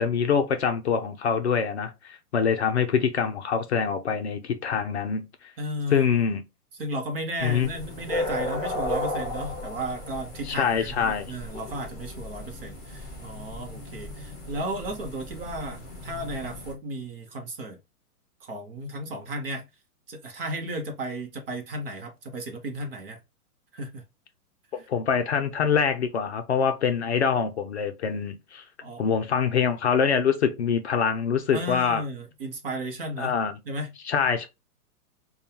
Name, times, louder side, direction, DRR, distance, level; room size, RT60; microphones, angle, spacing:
voice 1, 0.0-5.3 5.9-6.4 7.4-7.7 10.5-11.3 24.7-28.6 29.0-32.0 33.2-33.6 34.1-34.5, left 6 dB, 50° left, 0.5 m, -25 dB
voice 2, 5.6-6.2 6.8-17.8 18.4-19.6 20.1-23.2 23.7-24.0 28.8-29.0 29.4-29.5 31.5-33.3 33.7-33.9, right 1 dB, 40° right, 0.8 m, -34 dB
sound 1, 7.4-16.7, left 1 dB, 5° right, 0.4 m, -35 dB
5.1 x 2.3 x 2.8 m
hypercardioid pair, 170°, 46 cm